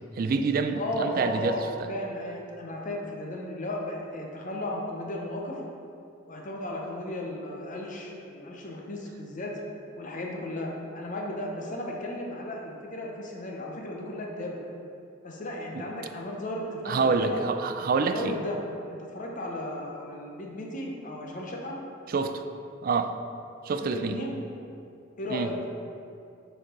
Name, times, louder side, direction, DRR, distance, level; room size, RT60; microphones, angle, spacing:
voice 1, 0.2-1.9 15.7-15.8 16.9-18.3 22.1-22.4 22.8-23.2 23.6-24.2 25.3-25.5, right 4 dB, 45° right, 8 dB, 0.3 m, -27 dB
voice 2, 0.7-5.6 6.3-9.6 10.0-14.6 15.2-17.4 18.1-18.6 18.9-21.8 23.8-24.4 25.2-25.5, left 1 dB, 40° left, -1 dB, 0.8 m, -35 dB
6.7 x 4.6 x 3.8 m, 2.6 s
head